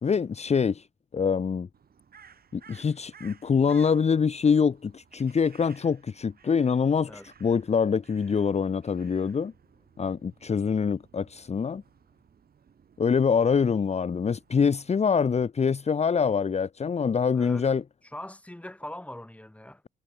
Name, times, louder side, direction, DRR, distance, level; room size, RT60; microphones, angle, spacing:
voice 1, 0.0-0.9 1.1-1.7 2.5-9.5 10.0-11.8 13.0-17.8, left 6 dB, 35° left, 1.1 m, -25 dB
Crow, 1.7-15.5, right 7 dB, 50° right, 7.6 m, -57 dB
voice 2, 17.3-17.7 18.1-19.8, left 1 dB, 5° left, 3.3 m, -41 dB
cardioid pair, 90°, 20 cm